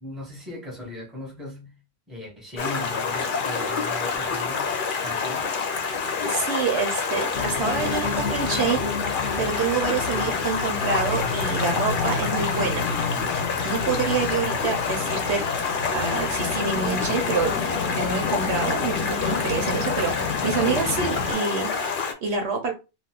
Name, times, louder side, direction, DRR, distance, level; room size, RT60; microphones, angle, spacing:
voice 1, 0.0-1.7 2.1-5.5 10.1-10.5, left 1 dB, ahead, 0.9 m, -38 dB
Stream, 2.6-22.1, left 5 dB, 55° left, 0.7 m, -27 dB
voice 2, 6.2-12.9 13.6-15.4 15.9-22.7, right 5 dB, 65° right, 0.9 m, -27 dB
sound 1, 7.3-21.3, left 5 dB, 85° left, 0.9 m, -31 dB
2.5 x 2.4 x 3.5 m
omnidirectional pair, 1.3 m